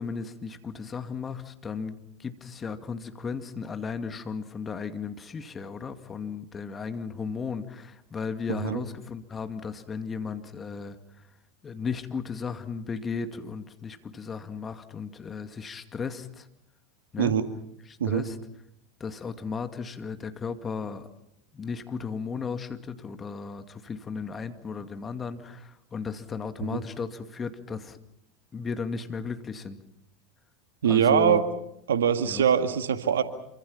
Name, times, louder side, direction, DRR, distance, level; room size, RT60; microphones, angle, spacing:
voice 1, 0.0-11.0 11.6-16.5 17.1-17.3 17.9-18.4 19.0-21.1 21.5-28.0 28.5-29.8 30.8-31.4 32.2-32.5, left 5 dB, 25° left, 8 dB, 2.3 m, -35 dB
voice 2, 8.5-8.8 17.2-17.4 18.0-18.3 26.7-26.8 30.8-31.4 31.9-33.2, right 8 dB, 75° right, 9 dB, 1.9 m, -23 dB
27.5 x 25.0 x 5.8 m, 0.78 s
hypercardioid pair, 85°, 0 cm